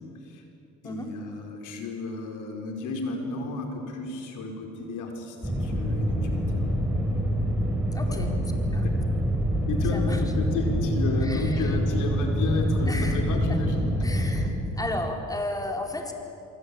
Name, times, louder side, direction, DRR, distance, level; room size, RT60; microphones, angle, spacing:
voice 1, 0.8-6.6 8.0-8.2 8.8-8.9 9.7-13.9 14.4-14.5, left 3 dB, 85° left, 2 dB, 5.1 m, -32 dB
sound 1, 5.4-14.5, equal, 5° right, 5.7 m, -26 dB
voice 2, 7.9-8.3 8.7-8.8 9.9-10.2 11.2-11.7 12.9-13.2 13.5-13.6 14.0-14.5 14.8-16.1, left 1 dB, 10° left, 2 dB, 4.6 m, -33 dB
26.5 x 24.0 x 8.8 m, 2.8 s
cardioid pair, 90°, 30 cm